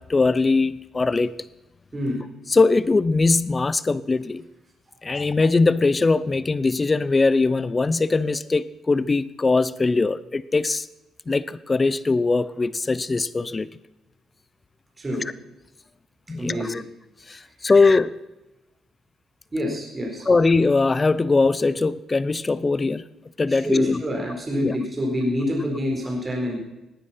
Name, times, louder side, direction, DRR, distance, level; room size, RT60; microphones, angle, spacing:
voice 1, 0.0-1.3 2.5-4.4 5.0-10.9 11.3-13.7 16.3-16.8 17.3-18.1 20.3-23.0 23.4-24.0 24.6-24.7, left 3 dB, 25° left, 17 dB, 0.7 m, -21 dB
voice 2, 1.9-2.2 15.0-15.2 16.4-16.7 19.5-20.3 23.5-26.6, equal, 25° right, -1 dB, 4.2 m, -27 dB
18.0 x 9.6 x 5.7 m, 1.0 s
cardioid pair, 90°, 0 cm